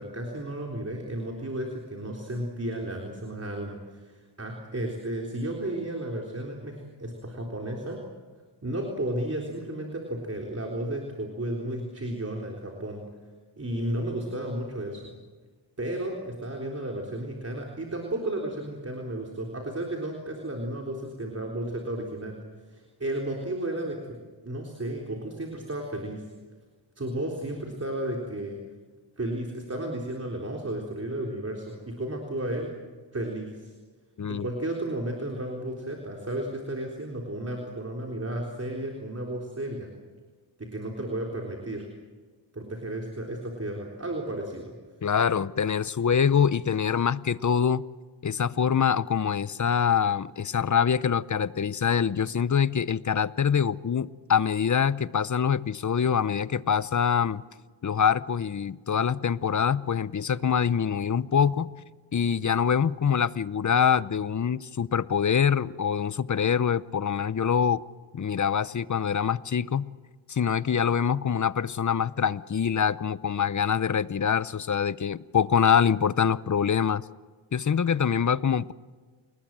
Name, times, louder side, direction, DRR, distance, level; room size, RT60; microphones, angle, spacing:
voice 1, 0.0-8.0 8.6-13.0 13.6-15.1 15.8-22.4 22.7-24.2 24.4-26.3 27.0-28.6 29.2-32.7 33.1-33.7 34.3-39.9 40.6-41.9 42.5-44.7, right 1 dB, 30° right, 0 dB, 3.8 m, -33 dB
voice 2, 45.0-47.8 48.2-57.4 57.8-61.7 62.1-67.8 68.1-69.9 70.3-77.0 77.5-78.7, left 7 dB, 40° left, 17 dB, 0.7 m, -25 dB
29.0 x 19.5 x 7.5 m, 1.4 s
cardioid pair, 75°, 48 cm